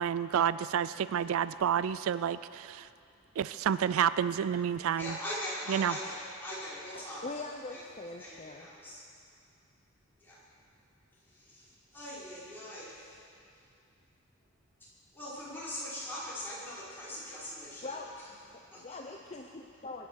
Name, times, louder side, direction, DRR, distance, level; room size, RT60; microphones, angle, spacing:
voice 1, 0.0-2.9 3.4-5.1 5.7-5.9, right 8 dB, 65° right, 15 dB, 0.3 m, -29 dB
voice 2, 5.0-7.2 7.7-7.8 8.2-9.0 10.2-10.4 11.2-13.2 15.1-18.0 18.7-19.0, left 1 dB, 10° left, -10 dB, 5.3 m, -41 dB
voice 3, 6.9-8.7 17.8-18.1 18.5-20.1, left 3 dB, 30° left, 2 dB, 0.7 m, -42 dB
23.0 x 9.5 x 6.5 m, 2.5 s
head